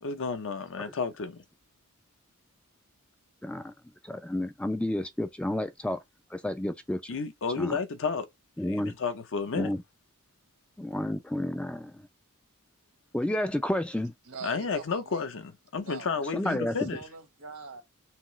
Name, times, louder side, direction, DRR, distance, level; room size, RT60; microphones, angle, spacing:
voice 1, 0.0-1.4 7.1-8.3 8.7-9.7 14.4-17.0, left 5 dB, 60° left, 0.7 m, -32 dB
voice 2, 3.4-3.7 4.1-6.0 6.3-7.0 7.5-7.8 8.6-8.9 9.5-9.8 10.8-11.9 13.1-14.1 16.3-16.9, left 1 dB, 5° left, 0.3 m, -30 dB
voice 3, 14.2-15.3 15.8-17.8, right 4 dB, 85° right, 1.3 m, -44 dB
5.8 x 2.0 x 3.1 m
head